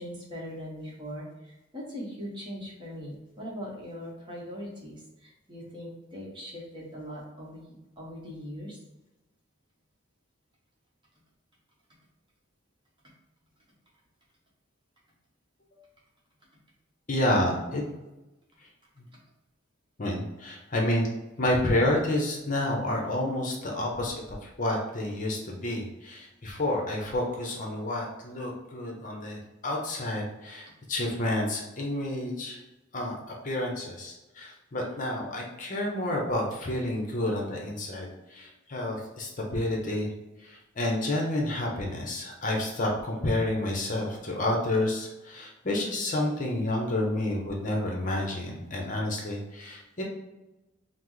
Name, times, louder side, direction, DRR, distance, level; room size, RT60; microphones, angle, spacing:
voice 1, 0.0-8.8 32.5-32.6, equal, 25° right, -3 dB, 1.0 m, -40 dB
voice 2, 17.1-17.8 18.6-18.7 19.0-19.1 20.0-21.1 21.4-32.6 32.9-33.2 33.4-40.1 40.4-50.0, left 1 dB, 40° left, 0 dB, 0.7 m, -29 dB
5.8 x 2.0 x 3.1 m, 1.0 s
head